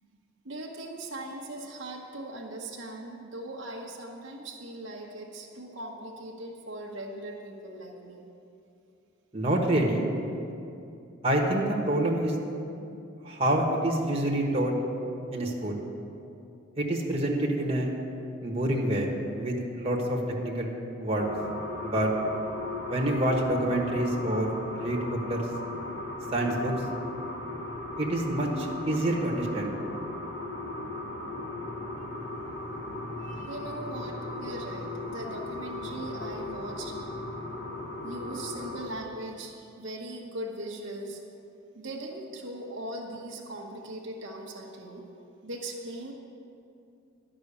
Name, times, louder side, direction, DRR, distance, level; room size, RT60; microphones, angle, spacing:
voice 1, 0.4-8.3 33.2-37.0 38.0-41.2 41.7-45.0 45.4-46.1, right 1 dB, 65° right, -1 dB, 1.1 m, -39 dB
voice 2, 9.3-10.1 11.2-12.3 13.2-14.7 15.3-15.8 16.8-17.9 18.4-19.1 19.4-20.7 21.0-21.3 21.8-22.1 22.9-25.0 25.3-25.4 26.3-26.7 28.0-29.7, right 1 dB, 30° right, -1 dB, 1.4 m, -27 dB
sound 1, 21.2-38.9, left 2 dB, 60° left, 1.2 m, -37 dB
11.5 x 6.1 x 8.4 m, 2.7 s
head